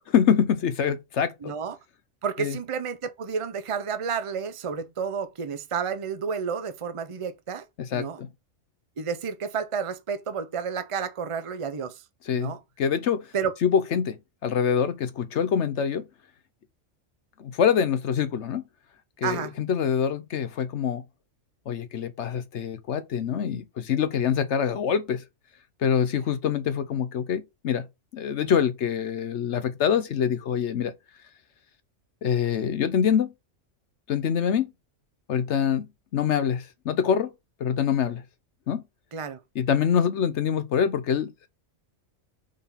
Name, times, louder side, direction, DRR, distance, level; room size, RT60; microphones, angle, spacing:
voice 1, 0.1-1.5 2.4-2.6 7.8-8.3 12.3-13.3 13.6-14.2 14.4-16.0 17.4-18.6 19.2-21.0 21.7-25.2 25.8-27.9 28.1-30.9 32.2-33.3 34.1-34.7 35.3-35.9 36.1-37.3 37.6-38.2 38.7-38.8 39.5-41.5, left 8 dB, 70° left, 1.0 m, -25 dB
voice 2, 1.4-1.8 2.2-7.6 7.9-8.2 9.0-12.0 12.3-12.6 13.3-13.5 19.2-19.5 39.1-39.4, right 6 dB, 35° right, 0.6 m, -31 dB
5.0 x 3.7 x 5.6 m
omnidirectional pair, 1.3 m